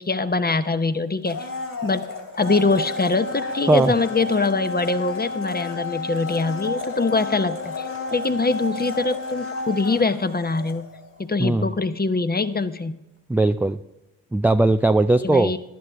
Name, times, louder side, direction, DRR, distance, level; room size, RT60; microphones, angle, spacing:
voice 1, 0.0-1.5 1.8-2.1 2.4-10.9 11.2-13.0 15.2-15.6, left 3 dB, 20° left, 11 dB, 0.9 m, -23 dB
Domestic sounds home sounds, 1.2-11.2 11.5-11.6, left 3 dB, 45° left, 3.5 m, -31 dB
voice 2, 11.4-11.7 13.3-13.8 14.3-15.5, right 2 dB, 5° right, 8 dB, 0.3 m, -18 dB
14.5 x 11.0 x 3.6 m, 0.98 s
hypercardioid pair, 40°, 44 cm